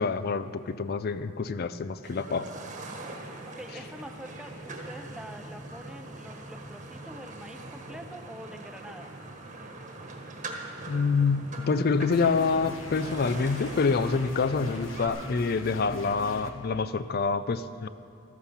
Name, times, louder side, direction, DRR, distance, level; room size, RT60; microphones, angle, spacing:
voice 1, 0.0-2.5 10.9-17.9, left 4 dB, 45° left, 13 dB, 0.4 m, -27 dB
sound 1, 2.0-15.1, right 2 dB, 35° right, 1.4 m, -42 dB
voice 2, 3.5-9.1, equal, 5° right, 5 dB, 0.7 m, -45 dB
sound 2, 12.1-16.5, left 3 dB, 60° left, 1.0 m, -42 dB
14.5 x 13.0 x 5.6 m, 2.9 s
head